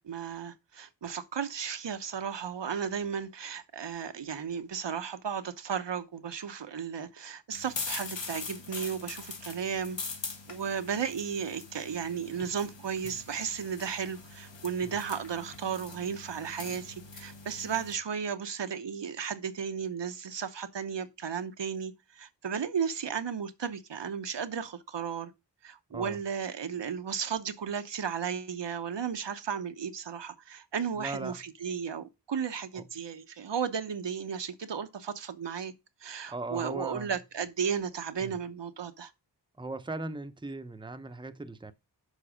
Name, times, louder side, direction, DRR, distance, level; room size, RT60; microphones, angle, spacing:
voice 1, 0.0-10.0 10.5-25.3 25.6-35.7 36.0-39.1, right 7 dB, 75° right, 1.0 m, -34 dB
sound 1, 7.5-17.9, left 4 dB, 85° left, 1.6 m, -42 dB
voice 2, 30.9-31.5 32.7-32.9 36.3-37.2 38.2-38.4 39.6-41.7, right 2 dB, 10° right, 0.8 m, -39 dB
6.6 x 4.7 x 6.3 m
cardioid pair, 45°, 43 cm